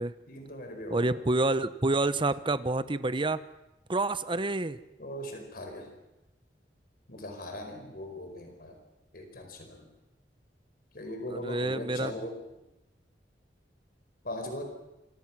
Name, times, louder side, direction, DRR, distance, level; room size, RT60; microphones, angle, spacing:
voice 1, 0.3-1.1 5.0-5.9 7.1-8.8 9.1-9.9 10.9-12.4 14.2-14.6, left 1 dB, 55° left, 5 dB, 4.7 m, -39 dB
voice 2, 0.9-3.4 3.9-4.8 11.3-12.1, right 2 dB, 30° right, 13 dB, 0.9 m, -28 dB
27.5 x 24.5 x 6.1 m, 0.94 s
head